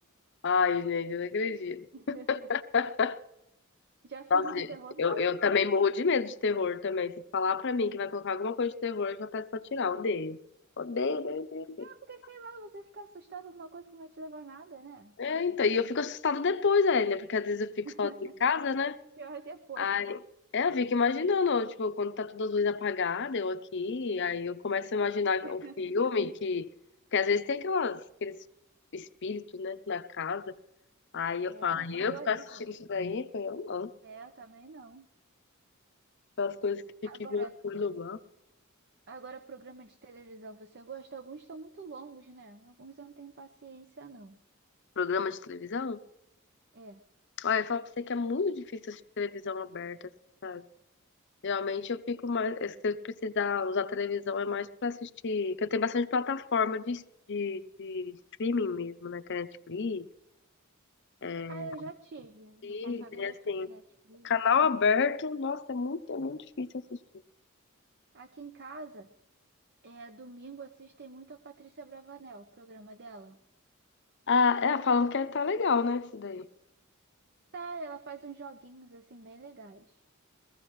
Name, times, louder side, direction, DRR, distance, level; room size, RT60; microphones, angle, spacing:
voice 1, 0.4-3.2 4.3-4.7 5.0-10.4 10.8-11.9 15.2-18.1 18.4-19.0 19.8-20.2 20.5-26.7 27.1-28.4 28.9-30.5 31.1-32.4 32.7-33.9 36.4-38.2 45.0-46.0 47.4-50.0 50.4-50.6 51.4-57.0 57.3-60.1 61.2-61.7 62.6-63.7 64.2-67.0 74.3-76.5, left 5 dB, 55° left, 0.7 m, -30 dB
voice 2, 1.9-2.5 4.0-5.7 11.8-15.2 17.8-18.3 19.2-19.9 25.4-25.9 31.5-32.7 34.0-35.1 37.0-37.5 39.1-44.4 46.7-47.0 61.5-64.3 68.1-69.1 69.8-73.4 77.5-80.0, right 4 dB, 50° right, 0.7 m, -46 dB
22.0 x 15.0 x 3.1 m
head